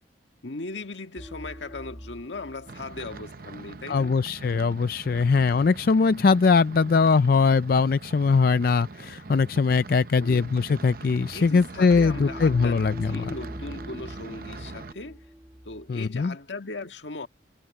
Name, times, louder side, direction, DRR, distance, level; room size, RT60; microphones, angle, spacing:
voice 1, 0.4-4.2 10.2-10.5 11.3-15.3 15.7-17.3, left 3 dB, 80° left, 1.8 m, -38 dB
sound 1, 1.2-4.2 11.9-15.9, equal, 5° right, 0.5 m, -41 dB
sound 2, 2.7-14.9, right 3 dB, 50° right, 0.7 m, -42 dB
voice 2, 3.9-13.2 15.9-16.3, left 4 dB, 55° left, 0.4 m, -21 dB
head